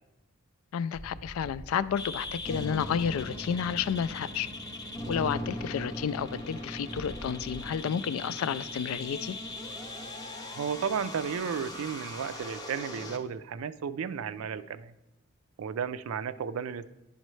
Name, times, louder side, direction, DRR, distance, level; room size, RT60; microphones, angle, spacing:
voice 1, 0.7-4.5 5.1-9.4, left 7 dB, 85° left, 16 dB, 0.3 m, -31 dB
sound 1, 0.9-5.5 6.4-7.8, right 1 dB, 20° right, 0.4 m, -48 dB
sound 2, 2.0-13.2, left 1 dB, 20° left, 0.7 m, -39 dB
voice 2, 10.5-14.9 15.6-16.9, right 7 dB, 80° right, 14 dB, 0.4 m, -33 dB
10.0 x 5.3 x 3.1 m, 0.99 s
head